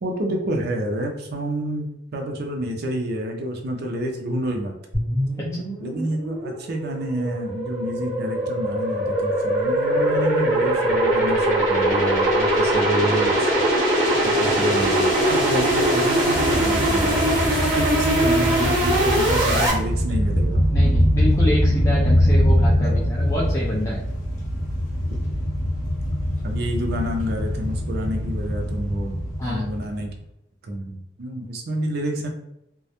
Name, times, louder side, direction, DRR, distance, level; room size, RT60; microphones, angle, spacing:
voice 1, 0.0-4.7 5.8-13.5 14.2-20.6 22.8-23.0 26.4-30.1 30.6-32.3, equal, 55° right, 2 dB, 0.5 m, -28 dB
sound 1, 4.9-19.7, right 1 dB, 15° right, 1.2 m, -21 dB
sound 2, 16.3-30.1, equal, 40° left, 0.7 m, -23 dB
voice 2, 20.7-24.0 29.4-29.7, left 1 dB, 15° left, -6 dB, 0.3 m, -27 dB
2.2 x 2.0 x 2.8 m, 0.81 s
head